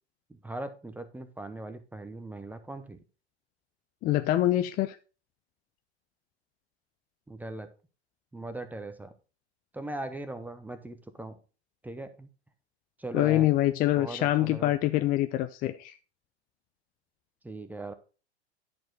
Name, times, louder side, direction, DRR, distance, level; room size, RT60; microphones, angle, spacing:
voice 1, 0.3-3.0 7.3-7.7 8.3-9.1 9.7-11.4 11.8-12.3 13.0-13.5 14.0-14.7 17.4-17.9, right 2 dB, 5° right, 0.8 m, -39 dB
voice 2, 4.0-5.0 13.1-15.9, left 14 dB, 25° left, 0.5 m, -25 dB
10.5 x 4.4 x 4.6 m
hypercardioid pair, 100°, 34 cm